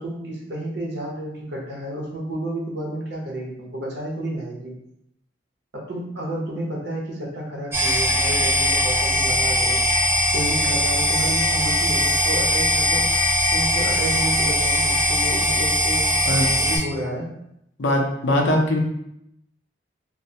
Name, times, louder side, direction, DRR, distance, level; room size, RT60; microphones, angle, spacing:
voice 1, 0.0-4.7 5.7-9.8 10.3-16.0 16.5-17.3, right 1 dB, 60° right, -2 dB, 0.8 m, -31 dB
sound 1, 7.7-16.8, left 1 dB, 15° right, 0.7 m, -20 dB
voice 2, 17.8-18.8, left 1 dB, 65° left, 1 dB, 0.5 m, -21 dB
3.1 x 2.0 x 2.7 m, 0.79 s
head